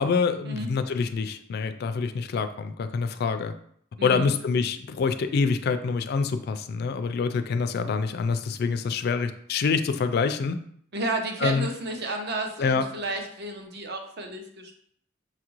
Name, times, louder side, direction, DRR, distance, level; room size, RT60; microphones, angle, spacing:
voice 1, 0.0-3.5 4.0-10.6 11.4-11.7 12.6-12.9, left 5 dB, 55° left, 10 dB, 0.3 m, -26 dB
voice 2, 4.0-4.3 10.9-14.7, right 2 dB, 55° right, 3 dB, 0.7 m, -32 dB
5.9 x 2.4 x 3.0 m, 0.65 s
head